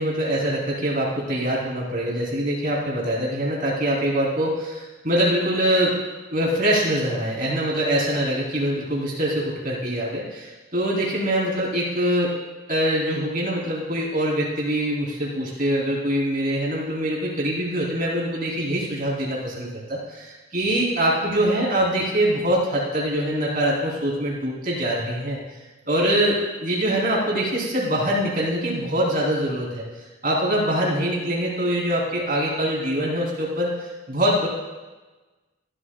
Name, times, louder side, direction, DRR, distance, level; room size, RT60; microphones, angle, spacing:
voice 1, 0.0-5.9 6.3-12.3 12.7-25.4 25.9-29.8 30.2-33.7 34.1-34.5, right 1 dB, 45° right, -3 dB, 3.4 m, -24 dB
15.0 x 12.0 x 2.3 m, 1.2 s
head